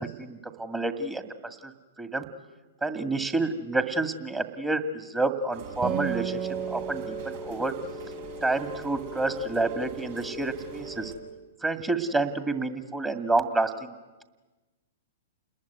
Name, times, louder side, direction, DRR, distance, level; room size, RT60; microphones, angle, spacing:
voice 1, 0.0-1.7 2.0-2.3 2.8-6.4 6.7-7.7 8.4-11.1 11.6-13.9, right 2 dB, 10° right, 8 dB, 2.1 m, -29 dB
Rain, 5.5-11.1, equal, 60° right, 5.5 m, -40 dB
Acoustic guitar, 5.8-9.5, right 10 dB, 30° right, 3.5 m, -35 dB
29.0 x 20.5 x 9.5 m, 1.2 s
figure-of-eight pair, 110°, 0 cm